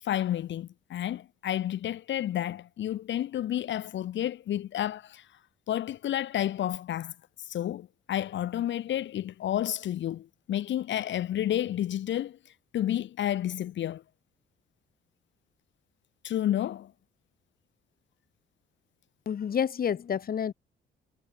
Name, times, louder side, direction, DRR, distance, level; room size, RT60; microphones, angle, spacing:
voice 1, 0.0-5.3 5.7-7.1 7.4-14.0 16.2-16.9, left 12 dB, 70° left, 1.3 m, -31 dB
voice 2, 19.2-20.5, left 8 dB, 50° left, 1.5 m, -29 dB
cardioid pair, 90°, 20 cm